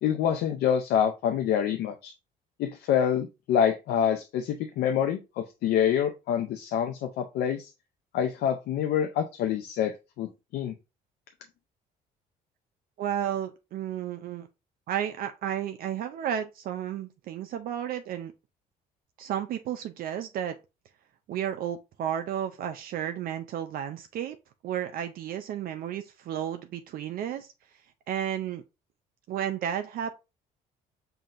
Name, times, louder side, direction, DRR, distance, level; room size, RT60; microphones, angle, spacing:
voice 1, 0.0-2.1 2.6-7.7 8.1-9.9 10.2-10.3 10.5-10.7, left 9 dB, 75° left, 0.5 m, -26 dB
voice 2, 13.0-14.5 14.9-18.3 19.2-20.6 21.3-24.4 24.6-27.5 28.1-28.6 29.3-30.1, right 10 dB, 60° right, 0.4 m, -32 dB
5.7 x 2.7 x 2.5 m
cardioid pair, 110°, 17 cm